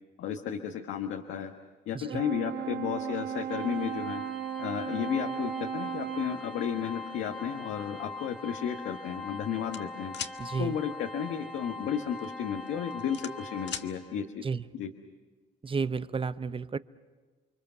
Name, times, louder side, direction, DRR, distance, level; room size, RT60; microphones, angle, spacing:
voice 1, 0.2-1.5 1.9-4.2 4.6-10.1 10.6-14.4 14.7-14.9, left 8 dB, 85° left, 1.4 m, -33 dB
Brass instrument, 2.1-6.5, right 9 dB, 60° right, 0.9 m, -36 dB
Organ, 3.5-14.2, left 2 dB, ahead, 2.6 m, -42 dB
sound 1, 9.7-10.4 12.0-12.2 12.7-13.9, left 8 dB, 65° left, 1.4 m, -38 dB
voice 2, 10.4-10.8 14.4-14.7 15.6-16.8, right 5 dB, 25° right, 0.8 m, -32 dB
29.5 x 23.5 x 6.9 m
cardioid pair, 90°, 20 cm